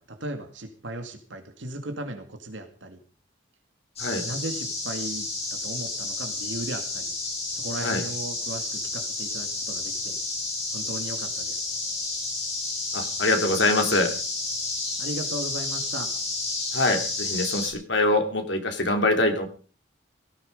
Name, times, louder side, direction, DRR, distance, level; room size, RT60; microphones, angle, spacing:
voice 1, 0.0-3.0 4.2-7.1 7.5-10.2 10.7-11.6 15.0-16.1, right 1 dB, 80° right, 5 dB, 2.2 m, -36 dB
sound 1, 4.0-17.7, left 3 dB, 35° left, 6.2 m, -31 dB
voice 2, 12.9-14.1 16.7-19.5, left 2 dB, 70° left, 5 dB, 3.0 m, -24 dB
17.5 x 14.0 x 5.4 m, 0.41 s
head